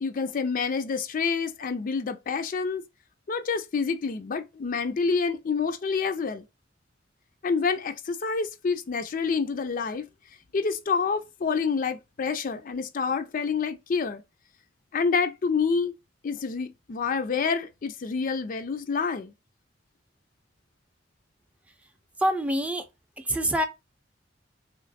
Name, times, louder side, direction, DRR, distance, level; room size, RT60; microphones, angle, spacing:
voice 1, 0.0-2.8 3.3-6.4 7.4-10.1 10.5-14.2 14.9-15.9 16.2-19.3, left 5 dB, 45° left, 0.4 m, -28 dB
voice 2, 22.2-22.8 23.2-23.7, equal, 5° right, 0.5 m, -25 dB
3.4 x 3.1 x 4.0 m
head